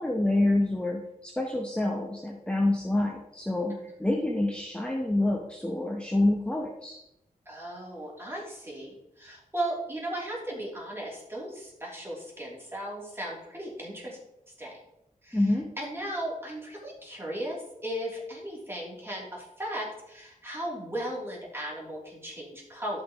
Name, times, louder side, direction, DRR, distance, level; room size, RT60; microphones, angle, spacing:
voice 1, 0.0-7.0 15.3-15.7, left 1 dB, 5° left, 0 dB, 0.9 m, -27 dB
voice 2, 7.4-14.2 14.6-14.8 15.2-15.4 15.8-23.0, right 1 dB, 15° right, -4 dB, 3.1 m, -36 dB
13.0 x 5.9 x 3.1 m, 0.86 s
wide cardioid pair, 145°, 14 cm